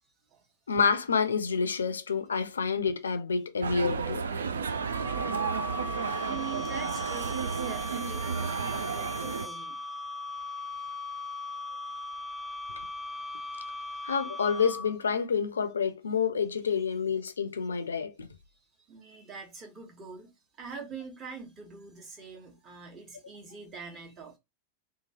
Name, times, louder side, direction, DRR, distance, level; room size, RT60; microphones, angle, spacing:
voice 1, 0.7-4.3 14.0-18.3, left 6 dB, 70° left, 0.4 m, -28 dB
sound 1, 3.6-9.5, right 6 dB, 70° right, 0.3 m, -32 dB
sound 2, 4.7-15.1, left 3 dB, ahead, 0.7 m, -39 dB
voice 2, 6.2-9.8 10.3-10.7 13.4-13.6 13.9-14.1 18.9-20.3 20.6-24.4, right 6 dB, 30° right, 1.1 m, -44 dB
2.9 x 2.3 x 2.8 m
figure-of-eight pair, 90°, 0 cm